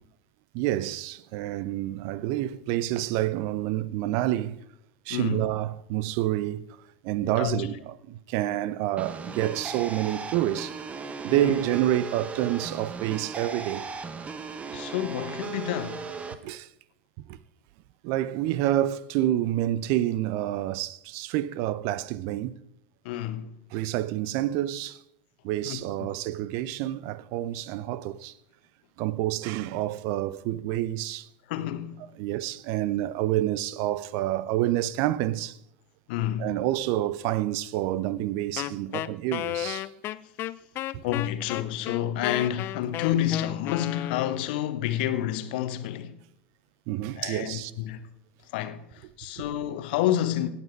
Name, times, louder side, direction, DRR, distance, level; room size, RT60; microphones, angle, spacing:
voice 1, 0.5-4.6 5.1-6.8 7.0-10.8 11.2-13.9 16.4-16.7 17.3-17.4 18.0-22.5 23.7-25.0 25.4-28.3 29.0-31.3 32.2-35.6 36.4-39.9 46.9-47.7 49.4-49.5, right 14 dB, 50° right, 0.6 m, -28 dB
voice 2, 5.1-5.4 7.4-7.7 11.4-11.6 14.7-16.0 23.0-23.5 25.6-26.1 31.5-32.0 36.1-36.5 41.0-46.2 47.2-48.0 48.5-50.5, left 11 dB, 60° left, 1.0 m, -29 dB
sound 1, 9.0-16.3, right 5 dB, 20° right, 1.0 m, -37 dB
Wind instrument woodwind instrument, 38.6-44.6, left 14 dB, 40° left, 0.5 m, -33 dB
17.0 x 8.7 x 4.6 m
figure-of-eight pair, 80°, 6 cm